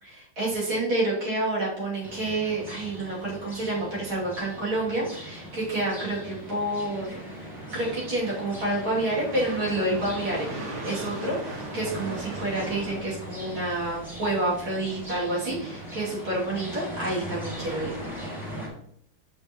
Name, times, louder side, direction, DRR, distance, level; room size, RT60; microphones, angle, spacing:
voice 1, 0.0-7.2 7.7-18.0, right 2 dB, 70° right, -7 dB, 3.5 m, -29 dB
sound 1, 2.0-18.7, equal, ahead, 2.3 m, -40 dB
sound 2, 5.3-13.0, right 2 dB, 90° right, 2.2 m, -40 dB
7.9 x 5.4 x 3.0 m, 0.71 s
omnidirectional pair, 2.3 m